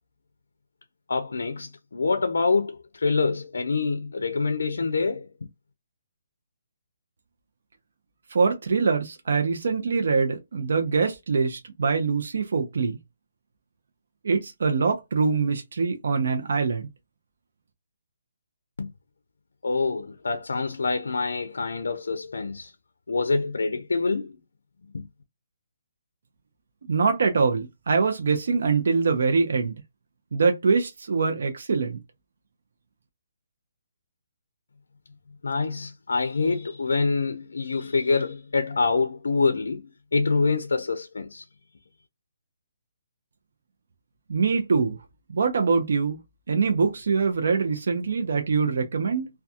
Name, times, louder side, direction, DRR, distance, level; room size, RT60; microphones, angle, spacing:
voice 1, 1.1-5.3 18.8-18.9 19.6-22.7 23.1-24.4 24.9-25.1 35.4-41.4, left 4 dB, 85° left, 0.4 m, -26 dB
voice 2, 8.3-13.0 14.2-16.9 26.9-29.7 30.3-32.0 44.3-45.0 45.3-46.2 46.5-49.3, right 5 dB, 65° right, 0.6 m, -24 dB
2.3 x 2.3 x 2.7 m
hypercardioid pair, 160°, 0 cm